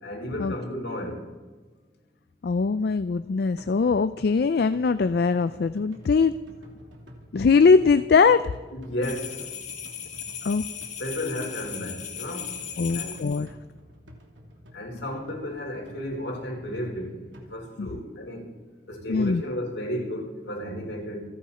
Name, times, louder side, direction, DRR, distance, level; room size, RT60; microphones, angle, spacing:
voice 1, 0.0-1.2 8.7-9.3 11.0-12.5 12.9-13.2 14.7-17.2 17.5-18.5 18.9-21.3, left 1 dB, 75° left, 0 dB, 4.5 m, -33 dB
voice 2, 2.4-6.3 7.3-8.5 10.4-10.6 12.8-13.5 17.8-17.9 19.1-19.4, left 4 dB, 55° left, 13 dB, 0.4 m, -21 dB
sound 1, 3.4-17.6, equal, 85° right, 3.0 m, -50 dB
sound 2, 9.0-13.4, left 8 dB, 40° left, 1.9 m, -37 dB
28.5 x 10.0 x 4.3 m, 1.3 s
head